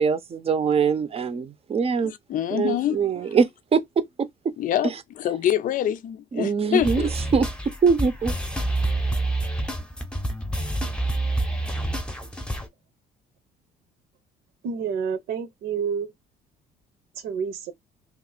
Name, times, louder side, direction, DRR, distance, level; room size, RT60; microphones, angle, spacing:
voice 1, 0.0-2.1 2.5-4.5 4.8-4.9 6.3-7.0 7.3-7.5 7.8-8.3, right 5 dB, 35° right, 0.6 m, -23 dB
voice 2, 2.0-3.0 4.6-4.9 5.2-7.1, left 10 dB, 50° left, 0.5 m, -25 dB
sound 1, 6.8-12.7, right 1 dB, 5° left, 0.8 m, -27 dB
voice 3, 14.6-16.1 17.2-17.7, right 6 dB, 80° right, 0.9 m, -29 dB
2.8 x 2.6 x 3.9 m
cardioid pair, 110°, 17 cm